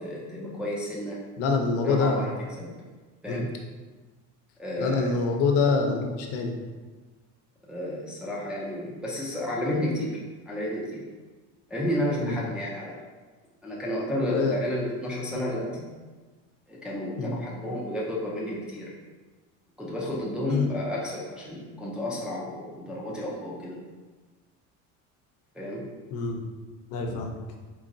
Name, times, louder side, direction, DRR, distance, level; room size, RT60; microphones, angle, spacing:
voice 1, 0.0-1.2 1.8-2.3 2.6-2.7 3.2-3.5 4.6-5.2 7.6-10.2 10.5-11.1 11.7-13.0 13.6-15.9 16.7-18.9 19.8-23.8 25.5-25.9, left 1 dB, 5° right, -6 dB, 0.3 m, -31 dB
voice 2, 1.4-2.3 3.3-3.5 4.8-6.5 12.2-12.4 14.2-14.6 15.3-15.4 17.2-17.3 20.5-20.7 26.1-26.4 26.9-27.4, left 4 dB, 50° left, 2 dB, 0.5 m, -26 dB
4.0 x 2.9 x 2.6 m, 1.3 s
cardioid pair, 160°, 32 cm